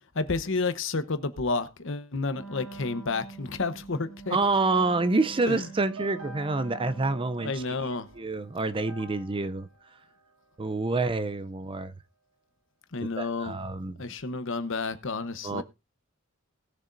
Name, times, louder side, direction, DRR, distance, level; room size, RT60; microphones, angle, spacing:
voice 1, 0.1-4.4 5.5-5.6 7.4-8.1 12.9-13.6 14.0-15.6, left 3 dB, 65° left, 1.0 m, -30 dB
Wind instrument woodwind instrument, 2.3-7.5, right 4 dB, 5° left, 1.6 m, -44 dB
voice 2, 4.3-7.9 8.2-9.7 10.6-11.9 13.0-14.0 15.4-15.6, right 3 dB, 25° right, 0.5 m, -28 dB
sound 1, 5.6-10.9, right 4 dB, 80° right, 1.4 m, -47 dB
19.0 x 7.1 x 2.6 m
head